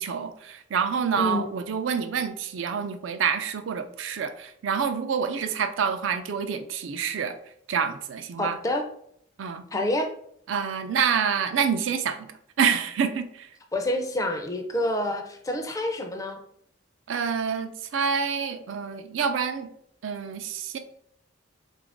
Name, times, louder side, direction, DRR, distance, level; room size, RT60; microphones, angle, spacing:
voice 1, 0.0-7.4 7.7-8.6 9.4-9.6 10.5-12.3 12.6-13.5 17.1-19.7 20.0-20.8, right 6 dB, 85° right, 8 dB, 0.4 m, -27 dB
voice 2, 1.2-1.5 8.4-8.8 9.7-10.1 13.7-16.4, left 1 dB, 15° left, 5 dB, 0.4 m, -27 dB
3.8 x 2.5 x 3.4 m, 0.68 s
head